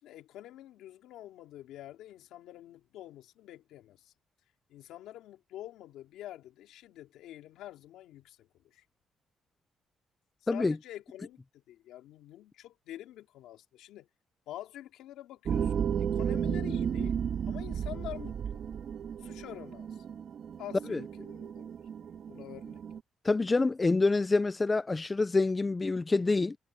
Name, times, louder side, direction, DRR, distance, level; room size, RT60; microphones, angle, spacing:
voice 1, 0.0-4.1 4.7-8.8 10.5-11.4 11.7-14.1 14.5-17.2 17.5-18.6 19.2-20.0 20.6-21.7 22.3-22.8, left 13 dB, 90° left, 2.7 m, -47 dB
sound 1, 15.4-23.0, right 8 dB, 60° right, 2.2 m, -34 dB
voice 2, 23.2-26.6, left 3 dB, 25° left, 0.6 m, -27 dB
cardioid pair, 90°, 0 cm